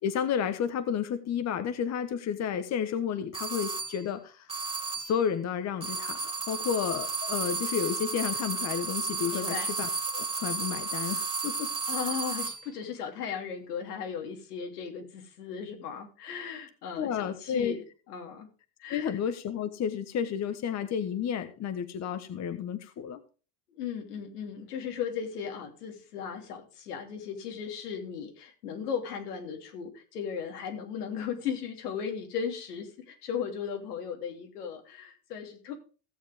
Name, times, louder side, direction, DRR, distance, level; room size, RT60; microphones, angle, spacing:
voice 1, 0.0-4.5 5.0-11.7 16.9-17.7 18.9-23.2, left 8 dB, 35° left, 10 dB, 1.3 m, -31 dB
sound 1, 3.3-4.0 4.5-5.2 5.8-12.7, right 4 dB, 10° right, 2.7 m, -33 dB
voice 2, 9.3-9.7 11.9-18.5 18.8-19.2 23.7-35.7, left 7 dB, 90° left, 3 dB, 3.2 m, -36 dB
16.5 x 7.3 x 3.5 m, 0.36 s
supercardioid pair, 110°, 45 cm